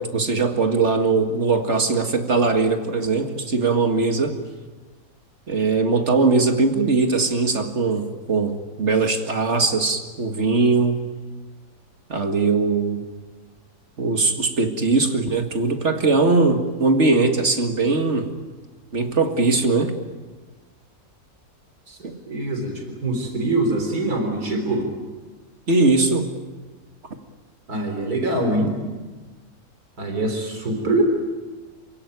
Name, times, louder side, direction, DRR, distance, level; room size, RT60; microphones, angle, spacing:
voice 1, 0.0-4.4 5.5-11.0 12.1-13.1 14.0-18.3 18.9-20.0 22.0-22.2 25.7-26.3, right 3 dB, 50° right, 6 dB, 2.2 m, -20 dB
voice 2, 22.3-24.9 27.7-28.7 30.0-31.0, right 2 dB, 80° right, 4 dB, 4.2 m, -24 dB
28.0 x 17.0 x 9.6 m, 1.3 s
omnidirectional pair, 1.6 m